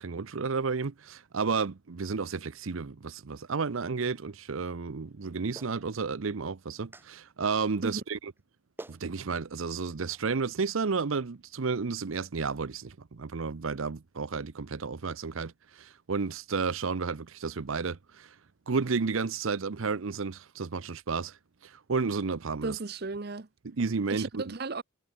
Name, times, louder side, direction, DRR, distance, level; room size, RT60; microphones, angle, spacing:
voice 1, 0.0-8.2 8.9-18.3 18.7-21.4 21.6-22.8 23.6-24.5, right 4 dB, 80° right, 0.7 m, -32 dB
Clapping, 5.5-5.8 6.9-7.1 8.4-8.5 8.8-9.0 10.1-10.2, right 1 dB, 10° right, 0.5 m, -45 dB
voice 2, 22.6-23.5 24.1-24.8, right 3 dB, 50° right, 0.8 m, -34 dB
head